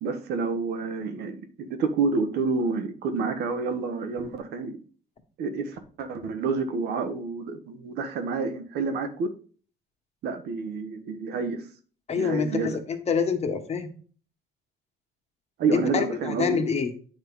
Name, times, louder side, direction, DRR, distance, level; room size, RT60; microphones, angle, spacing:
voice 1, 0.0-4.8 5.4-9.3 10.2-11.6 12.2-12.8 15.6-16.6, right 4 dB, 75° right, 9 dB, 1.2 m, -29 dB
voice 2, 12.1-13.9 15.7-16.9, left 6 dB, 40° left, 5 dB, 1.3 m, -26 dB
9.1 x 3.1 x 5.3 m, 0.41 s
cardioid pair, 110°, 17 cm